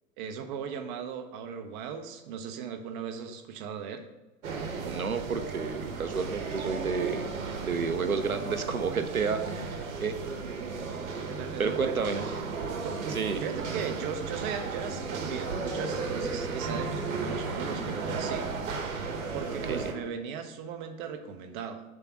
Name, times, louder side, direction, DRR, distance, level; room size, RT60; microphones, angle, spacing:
voice 1, 0.2-4.1 11.3-12.2 12.8-18.5 19.3-21.8, right 7 dB, 35° right, 6 dB, 0.7 m, -38 dB
sound 1, 4.4-19.9, right 4 dB, 60° right, 1.1 m, -34 dB
voice 2, 4.8-7.2 7.6-10.2 10.6-10.7 11.6-12.3 13.1-13.4 19.7-19.8, right 5 dB, 90° right, 9 dB, 0.6 m, -30 dB
6.8 x 3.6 x 5.6 m, 1.1 s
figure-of-eight pair, 95°, 41 cm